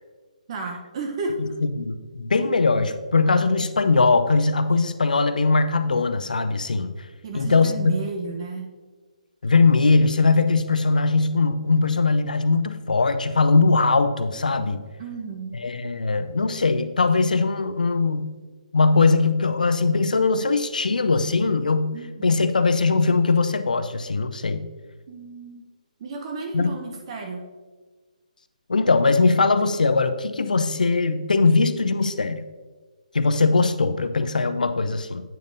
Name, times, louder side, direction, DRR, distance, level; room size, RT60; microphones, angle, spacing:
voice 1, 0.5-1.3 7.2-8.7 15.0-15.5 21.9-22.3 25.1-25.6 26.0-27.4, right 4 dB, 40° right, 2 dB, 0.8 m, -32 dB
voice 2, 1.8-6.9 7.3-8.0 9.4-14.8 15.5-18.3 18.7-22.0 22.2-24.7 26.5-26.7 28.7-32.4 33.1-35.2, left 3 dB, 80° left, 10 dB, 0.6 m, -20 dB
9.1 x 6.6 x 2.6 m, 1.3 s
hypercardioid pair, 145°, 4 cm